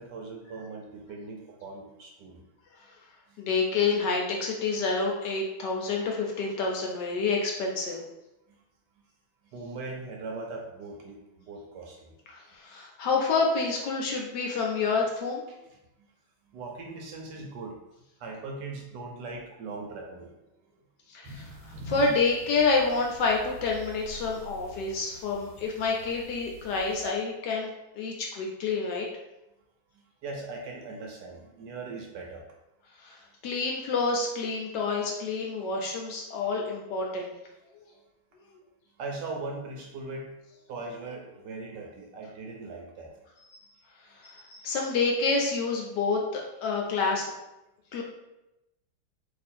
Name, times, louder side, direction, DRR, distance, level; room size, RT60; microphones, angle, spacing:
voice 1, 0.0-2.4 3.3-3.4 8.5-8.6 9.5-12.1 15.5-15.6 16.5-17.7 18.2-20.4 29.9-32.4 39.0-40.4 40.7-43.1, right 3 dB, 70° right, 0 dB, 1.1 m, -40 dB
voice 2, 3.4-8.0 12.3-15.5 21.1-29.1 33.0-37.3 37.7-37.8 44.2-47.3 47.9-48.0, left 4 dB, 70° left, 0 dB, 1.1 m, -28 dB
sound 1, 21.2-27.1, equal, 90° right, 1.5 m, -45 dB
3.0 x 2.6 x 4.2 m, 0.93 s
omnidirectional pair, 2.1 m